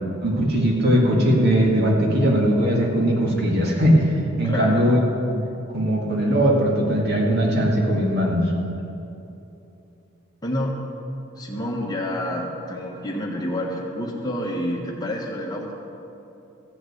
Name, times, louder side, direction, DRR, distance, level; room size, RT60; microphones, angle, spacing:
voice 1, 0.2-4.1 4.4-5.0 5.7-8.5, equal, 50° right, -1 dB, 2.0 m, -19 dB
voice 2, 4.4-4.9 10.4-10.8 11.3-15.7, left 1 dB, 20° left, -1 dB, 1.4 m, -28 dB
15.0 x 5.9 x 7.9 m, 2.8 s
head